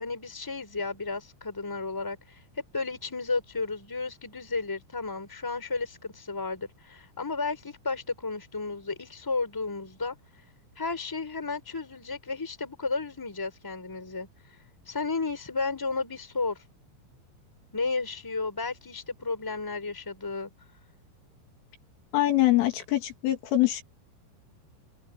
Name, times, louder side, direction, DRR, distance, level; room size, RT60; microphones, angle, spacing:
voice 1, 0.0-10.1 10.7-14.3 14.9-16.6 17.7-20.5, left 3 dB, 5° left, 3.4 m, -33 dB
voice 2, 22.1-23.8, left 15 dB, 80° left, 5.2 m, -24 dB
omnidirectional pair, 5.7 m